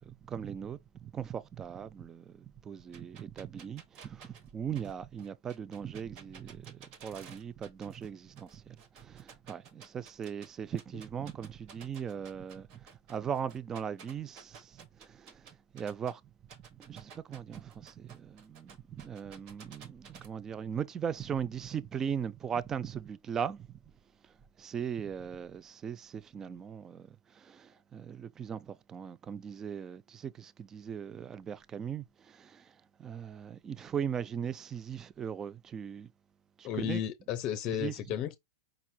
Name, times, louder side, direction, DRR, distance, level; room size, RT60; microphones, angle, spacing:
voice 1, 0.0-16.2 16.6-23.8 24.2-36.1 36.6-37.0 37.7-37.9, right 8 dB, 25° right, 0.4 m, -39 dB
sound 1, 2.9-8.1 8.4-10.5 10.8-16.1 16.5-20.3, right 6 dB, 50° right, 1.1 m, -53 dB
voice 2, 36.6-38.4, left 10 dB, 45° left, 0.6 m, -33 dB
5.0 x 4.3 x 2.2 m
hypercardioid pair, 115°, 2 cm